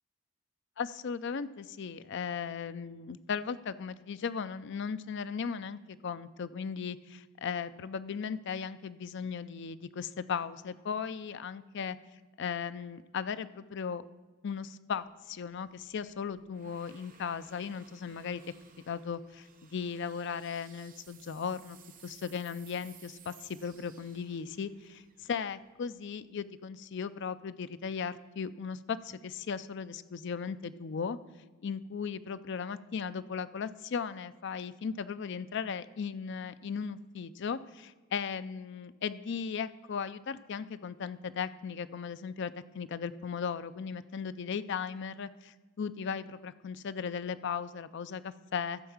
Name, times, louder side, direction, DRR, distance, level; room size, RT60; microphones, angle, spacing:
voice 1, 0.8-12.0 12.4-14.0 14.4-18.4 18.9-21.8 22.0-31.2 31.6-48.8, left 6 dB, 60° left, 13 dB, 0.4 m, -37 dB
sound 1, 15.0-26.3, right 7 dB, 45° right, 0.9 m, -59 dB
13.5 x 4.8 x 7.1 m, 1.3 s
head